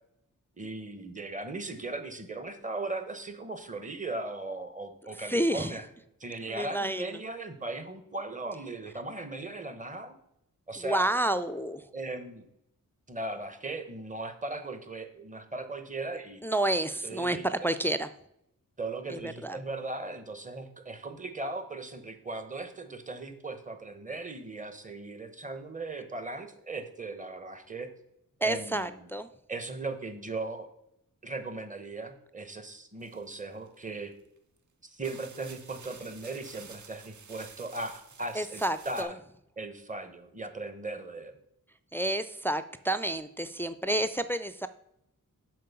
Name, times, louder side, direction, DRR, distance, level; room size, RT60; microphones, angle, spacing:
voice 1, 0.6-5.8 6.2-10.1 10.7-11.1 11.9-12.5 13.1-16.4 17.0-17.5 18.8-27.9 28.4-29.1 29.5-30.7 31.2-34.1 34.9-39.2 39.6-41.4, right 2 dB, 20° right, 8 dB, 1.0 m, -38 dB
voice 2, 5.2-5.8 6.5-7.2 10.8-11.9 16.4-18.1 19.1-19.6 28.4-29.3 38.3-39.1 41.9-44.7, right 1 dB, 5° left, 11 dB, 0.4 m, -30 dB
sound 1, 33.0-33.9 34.6-34.7 35.0-39.0, right 5 dB, 60° right, 0.9 m, -50 dB
7.6 x 5.2 x 6.8 m, 0.78 s
wide cardioid pair, 115°, 34 cm